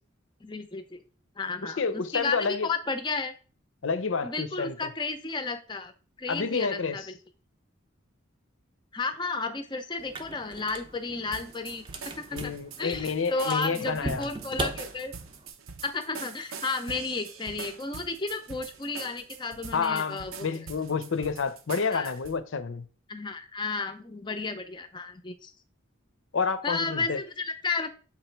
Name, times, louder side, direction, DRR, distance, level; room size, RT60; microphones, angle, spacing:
voice 1, 0.4-1.0 1.4-3.3 4.2-5.9 6.2-7.0 8.9-11.8 12.2-15.1 15.8-20.5 21.9-22.1 23.1-25.5 26.6-27.9, left 4 dB, 20° left, 0.5 m, -33 dB
voice 2, 1.6-2.7 3.8-4.7 6.3-7.0 12.3-14.3 19.7-22.8 26.3-27.2, left 5 dB, 70° left, 0.6 m, -29 dB
sound 1, 10.0-15.5, right 2 dB, 25° right, 0.6 m, -39 dB
sound 2, 11.3-22.4, right 5 dB, 85° right, 0.7 m, -44 dB
7.2 x 3.0 x 4.5 m
head